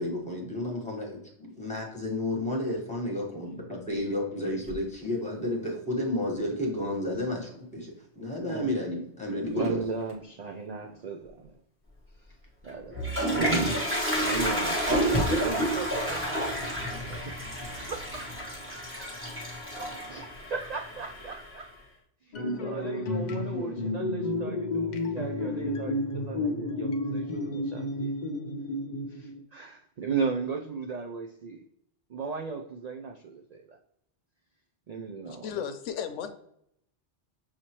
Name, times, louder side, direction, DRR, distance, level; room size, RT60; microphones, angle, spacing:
voice 1, 0.0-9.8, left 1 dB, 5° left, 1.3 m, -31 dB
sound 1, 4.6-5.9 6.4-6.5 8.0-8.5 9.0-11.7 12.1-12.2 12.6-12.7 13.0-13.1 13.3-17.1 17.4-17.6 17.9-18.5, left 1 dB, 30° left, 0.9 m, -40 dB
voice 2, 9.5-11.6 12.2-12.4 12.6-17.4 17.9-19.2 20.1-21.7 22.2-28.1 29.1-31.7 32.1-33.8 34.9-35.7, right 5 dB, 70° right, 0.4 m, -36 dB
Toilet flush, 12.7-21.6, equal, 10° right, 1.1 m, -30 dB
sound 2, 22.3-29.4, left 2 dB, 55° left, 0.5 m, -31 dB
voice 3, 35.2-36.3, left 8 dB, 90° left, 1.0 m, -35 dB
6.4 x 2.8 x 2.9 m
omnidirectional pair, 1.2 m